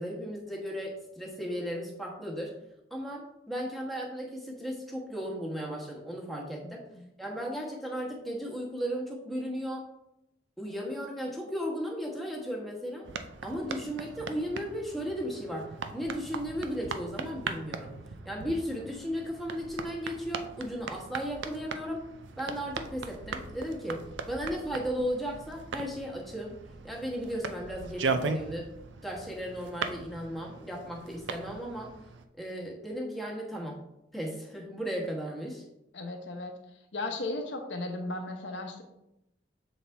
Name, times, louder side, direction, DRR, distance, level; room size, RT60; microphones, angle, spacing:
voice 1, 0.0-2.5 2.9-6.8 7.2-9.8 10.6-13.0 13.4-17.9 18.2-22.0 22.4-26.5 26.8-28.7 29.0-31.9 32.4-33.8 34.1-35.6, equal, ahead, -2 dB, 1.3 m, -35 dB
sound 1, 13.0-32.2, right 4 dB, 75° right, 0.5 m, -39 dB
voice 2, 35.9-36.5 36.9-38.8, left 2 dB, 75° left, 4 dB, 0.9 m, -35 dB
7.3 x 4.2 x 3.4 m, 0.87 s
head